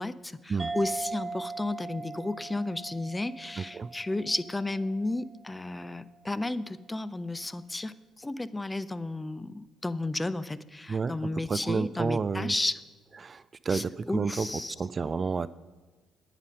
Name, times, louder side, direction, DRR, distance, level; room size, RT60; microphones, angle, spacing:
voice 1, 0.0-12.8 13.7-14.8, left 2 dB, 15° left, 16 dB, 0.5 m, -33 dB
sound 1, 0.6-5.5, right 3 dB, 20° right, 1.0 m, -40 dB
voice 2, 10.9-12.5 13.2-14.5 14.8-15.5, right 5 dB, 35° right, 16 dB, 0.3 m, -30 dB
9.8 x 9.1 x 5.2 m, 1.3 s
figure-of-eight pair, 45°, 0 cm